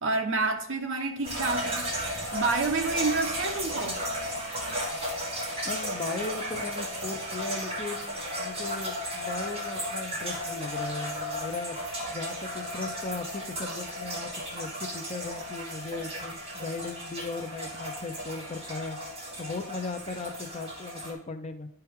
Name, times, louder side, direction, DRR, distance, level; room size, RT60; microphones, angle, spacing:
voice 1, 0.0-1.9 2.3-4.0, right 3 dB, 60° right, 0.9 m, -28 dB
sound 1, 1.2-21.1, equal, 25° right, 2.1 m, -34 dB
voice 2, 5.6-11.8 12.1-19.0 19.4-21.7, left 3 dB, 30° left, 0.6 m, -37 dB
11.0 x 4.5 x 3.6 m
head